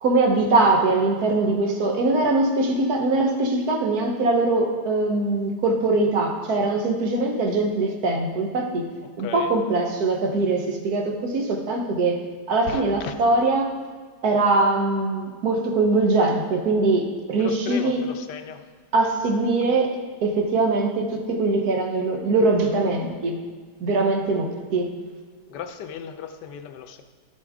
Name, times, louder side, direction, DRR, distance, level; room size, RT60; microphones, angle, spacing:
voice 1, 0.0-8.8 9.2-12.2 12.5-13.7 14.2-18.0 18.9-19.9 20.2-23.3 23.8-24.9, right 2 dB, 65° right, 3 dB, 1.5 m, -22 dB
voice 2, 9.2-9.6 12.7-13.1 17.4-18.6 25.5-27.0, left 7 dB, 90° left, 8 dB, 1.3 m, -35 dB
12.0 x 7.1 x 3.6 m, 1.5 s
omnidirectional pair, 1.8 m